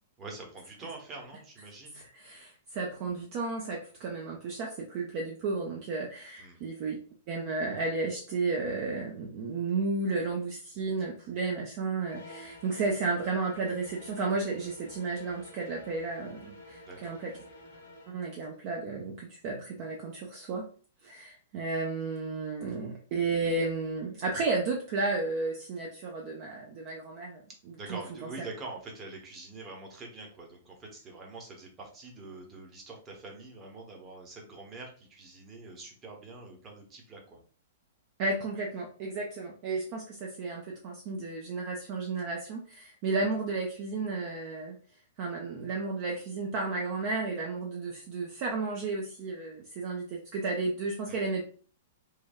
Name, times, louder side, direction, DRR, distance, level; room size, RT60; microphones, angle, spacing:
voice 1, 0.2-2.0 6.4-6.6 16.9-17.1 27.8-37.4 51.1-51.3, right 3 dB, 25° right, 0 dB, 0.9 m, -45 dB
voice 2, 1.9-7.0 7.3-17.3 18.1-20.7 21.0-27.4 27.7-28.0 38.2-44.8 45.2-51.4, right 3 dB, 40° right, 0 dB, 0.5 m, -33 dB
sound 1, 12.0-18.2, left 1 dB, 70° left, 0.9 m, -50 dB
3.2 x 2.3 x 2.3 m, 0.41 s
figure-of-eight pair, 105°, 0 cm